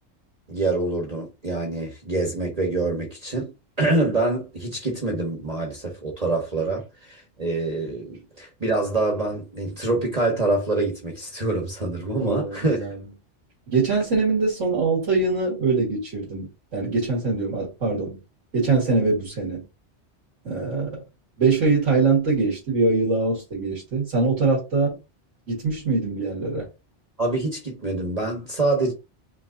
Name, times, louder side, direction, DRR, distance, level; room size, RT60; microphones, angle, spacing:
voice 1, 0.5-3.5 3.8-12.9 27.2-28.9, right 2 dB, 35° right, 1.2 m, -25 dB
voice 2, 12.2-13.0 13.7-18.2 18.5-19.6 20.4-21.0 21.4-25.0 25.5-26.7, right 3 dB, 90° right, 2.1 m, -23 dB
5.2 x 3.4 x 2.7 m
omnidirectional pair, 1.2 m